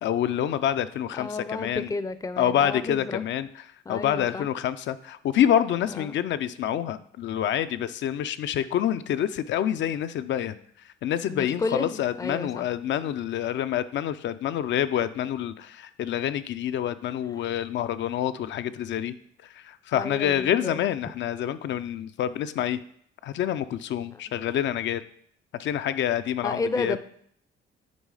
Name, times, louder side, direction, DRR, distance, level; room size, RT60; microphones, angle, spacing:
voice 1, 0.0-1.9 2.4-19.2 19.4-22.8 23.2-25.0 25.6-27.0, left 10 dB, 65° left, 12 dB, 0.5 m, -27 dB
voice 2, 1.2-3.2 3.9-4.5 5.9-6.2 11.3-12.7 19.9-20.8 26.4-27.0, left 3 dB, 15° left, 12 dB, 0.5 m, -31 dB
9.3 x 3.1 x 4.8 m, 0.66 s
cardioid pair, 90°, 20 cm